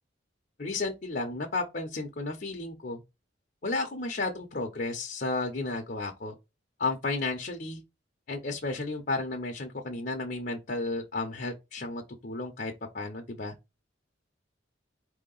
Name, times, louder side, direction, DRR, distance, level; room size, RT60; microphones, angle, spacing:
voice 1, 0.6-3.0 3.6-6.3 6.8-7.8 8.3-13.5, left 3 dB, 50° left, 0.8 m, -33 dB
4.5 x 2.8 x 3.9 m
head